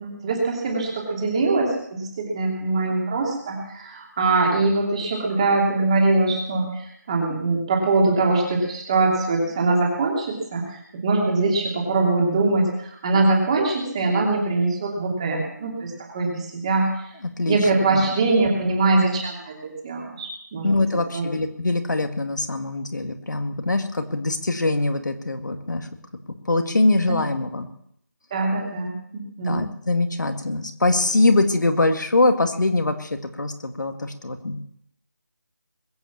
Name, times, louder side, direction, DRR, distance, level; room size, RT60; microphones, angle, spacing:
voice 1, 0.0-17.1 17.5-20.9 21.1-21.2 27.1-27.2 28.3-29.7, right 3 dB, 20° right, -1 dB, 3.0 m, -22 dB
voice 2, 17.4-18.0 20.6-25.9 26.3-27.7 29.5-34.7, left 2 dB, 75° left, 6 dB, 2.1 m, -23 dB
21.5 x 8.4 x 7.3 m, 0.72 s
figure-of-eight pair, 170°, 10 cm